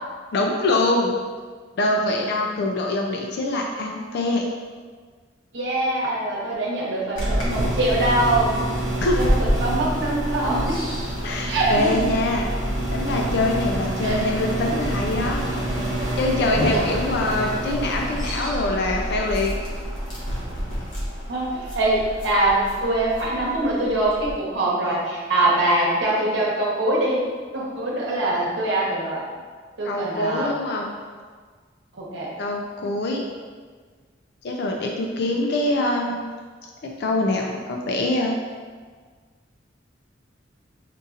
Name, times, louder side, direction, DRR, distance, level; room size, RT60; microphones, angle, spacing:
voice 1, 0.3-1.1 1.8-4.5 9.0-9.2 11.2-12.5 12.9-15.4 16.2-19.6 29.8-30.9 32.4-33.2 34.4-36.2 36.8-38.4, left 2 dB, 60° left, 1 dB, 0.4 m, -24 dB
voice 2, 5.5-8.7 9.2-10.9 11.5-12.0 14.0-14.2 21.3-21.5 21.7-27.3 27.5-29.3 29.8-30.6 32.0-32.3, right 1 dB, 70° right, -5 dB, 1.0 m, -23 dB
sound 1, 7.2-24.4, equal, 90° left, 1.2 m, -27 dB
5.2 x 2.7 x 2.4 m, 1.5 s
head